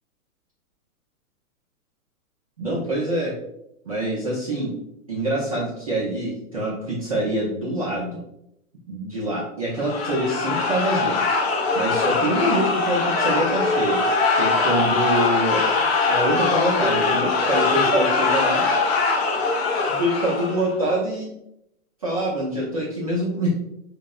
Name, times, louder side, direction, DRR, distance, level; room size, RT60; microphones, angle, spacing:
voice 1, 2.6-3.3 3.8-4.7 5.1-8.2 8.9-11.2 11.7-14.0 14.3-15.6 16.1-18.7 19.9-21.3 22.0-23.5, right 1 dB, 25° right, -8 dB, 0.4 m, -25 dB
sound 1, 9.8-20.7, left 3 dB, 45° left, 0.5 m, -22 dB
4.4 x 2.0 x 2.3 m, 0.81 s
hypercardioid pair, 155°, 44 cm